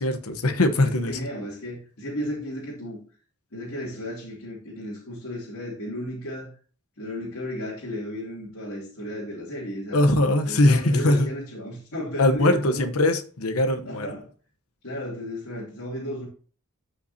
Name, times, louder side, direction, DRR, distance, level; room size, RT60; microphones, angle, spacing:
voice 1, 0.0-1.2 9.9-11.3 12.2-14.1, left 1 dB, 90° left, 1.0 m, -21 dB
voice 2, 0.8-3.0 3.5-6.5 7.0-10.1 10.4-12.9 13.8-14.3 14.8-16.3, left 1 dB, 70° left, 2.8 m, -34 dB
13.0 x 5.7 x 2.8 m
head